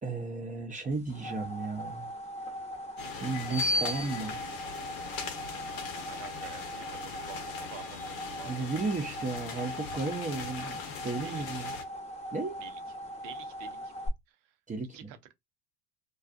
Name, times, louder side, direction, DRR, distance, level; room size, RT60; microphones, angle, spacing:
voice 1, 0.0-2.1 3.2-4.4 8.4-11.7 12.3-12.6 14.7-15.1, right 3 dB, 20° right, 0.5 m, -34 dB
sound 1, 0.9-14.1, equal, 20° left, 0.7 m, -41 dB
sound 2, 3.0-11.8, left 3 dB, 70° left, 0.8 m, -38 dB
voice 2, 6.0-8.5 11.2-11.6 12.6-12.8 13.2-13.9 14.3-14.4 14.9-15.3, right 11 dB, 85° right, 0.6 m, -49 dB
2.4 x 2.3 x 2.5 m
hypercardioid pair, 80°, 36 cm